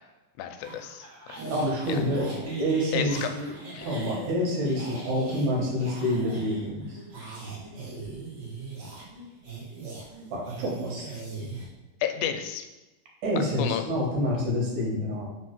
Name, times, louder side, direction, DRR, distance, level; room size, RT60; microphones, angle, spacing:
voice 1, 0.4-1.1 1.9-2.0 2.9-3.3 3.7-3.9 12.0-12.7 13.6-13.8, left 9 dB, 90° left, 7 dB, 2.4 m, -31 dB
sound 1, 0.6-11.7, right 3 dB, 50° right, 1.3 m, -39 dB
voice 2, 1.4-2.3 2.6-3.5 3.8-7.0 10.3-11.1 13.2-15.3, equal, 65° right, -2 dB, 2.6 m, -27 dB
4.9 x 4.3 x 5.8 m, 1.1 s
omnidirectional pair, 4.1 m